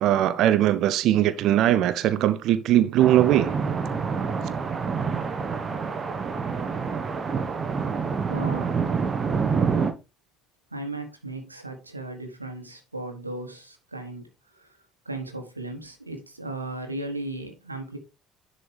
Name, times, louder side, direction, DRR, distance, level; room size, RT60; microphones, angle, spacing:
voice 1, 0.0-3.5, right 12 dB, 55° right, 0.6 m, -20 dB
sound 1, 3.0-9.9, right 5 dB, 35° right, 1.0 m, -27 dB
voice 2, 7.8-8.9 10.7-14.8 15.0-18.0, right 2 dB, 90° right, 1.2 m, -36 dB
10.5 x 4.1 x 3.3 m
figure-of-eight pair, 55°, 0 cm